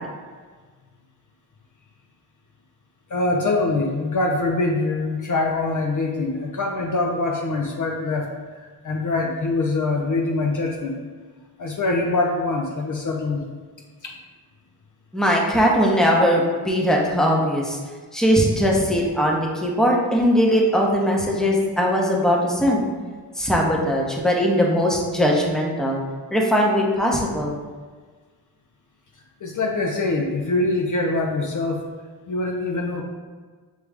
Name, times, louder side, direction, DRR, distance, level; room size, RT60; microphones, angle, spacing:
voice 1, 3.1-8.3 8.5-11.0 11.6-13.5 14.0-14.1 29.4-31.9 32.3-33.0, left 2 dB, 50° left, 1 dB, 0.6 m, -24 dB
voice 2, 15.1-17.8 18.1-22.8 23.4-26.0 26.3-27.6, equal, ahead, -2 dB, 0.8 m, -20 dB
6.3 x 2.3 x 3.4 m, 1.5 s
cardioid pair, 70°, 41 cm